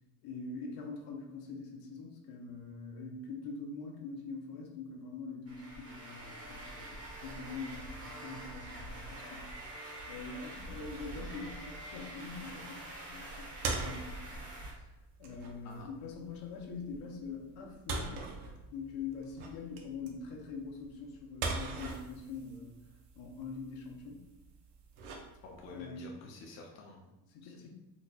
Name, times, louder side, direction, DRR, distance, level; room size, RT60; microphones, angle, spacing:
voice 1, 0.2-9.8 10.1-14.9 15.2-18.3 18.7-22.8 23.1-24.3 25.7-26.1 27.3-27.7, left 4 dB, 75° left, 1 dB, 0.8 m, -44 dB
sound 1, 5.5-14.7, right 1 dB, 40° right, 1.0 m, -46 dB
sound 2, 10.7-25.8, right 3 dB, 85° right, 0.7 m, -43 dB
voice 2, 25.4-27.1 27.4-27.7, left 3 dB, 45° left, 0 dB, 0.6 m, -49 dB
4.1 x 2.9 x 2.3 m, 1.0 s
cardioid pair, 140°, 38 cm